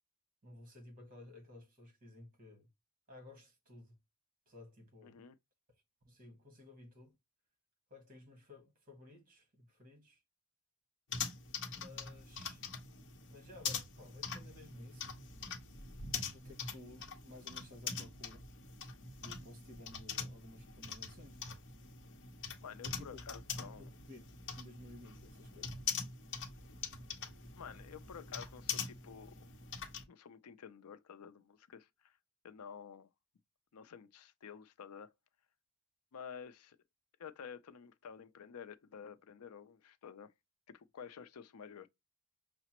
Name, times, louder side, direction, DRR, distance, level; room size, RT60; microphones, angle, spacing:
voice 1, 0.4-2.7 3.1-3.9 4.5-5.2 6.0-7.2 7.9-10.2 11.7-12.6 13.3-15.1 16.2-18.4 19.2-21.4 22.8-23.2 23.6-24.2 24.6-25.8, left 2 dB, 40° right, 1.4 m, -55 dB
voice 2, 5.0-5.4 22.6-23.9 27.6-29.5 30.1-32.2 32.4-33.1 33.7-35.1 36.1-36.8 37.2-40.3 40.7-41.9, left 7 dB, 85° left, 0.5 m, -51 dB
sound 1, 11.1-30.0, left 6 dB, 55° left, 0.8 m, -44 dB
5.7 x 2.0 x 2.9 m
head